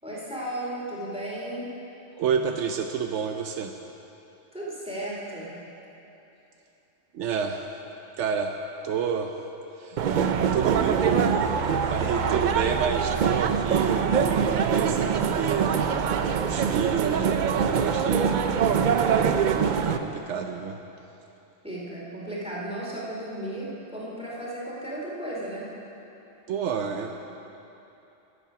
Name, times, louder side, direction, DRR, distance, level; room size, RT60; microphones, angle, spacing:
voice 1, 0.0-1.7 4.5-5.5 11.9-12.2 21.6-25.7, right 1 dB, 5° right, -5 dB, 2.5 m, -35 dB
voice 2, 2.2-3.8 7.1-7.7 8.2-8.6 8.8-9.3 9.8-10.3 10.5-15.7 16.4-18.4 19.0-20.8 26.5-27.1, right 7 dB, 80° right, 5 dB, 0.9 m, -30 dB
sound 1, 10.0-20.0, right 7 dB, 55° right, 0.5 m, -24 dB
13.5 x 8.5 x 5.9 m, 2.9 s
omnidirectional pair, 1.2 m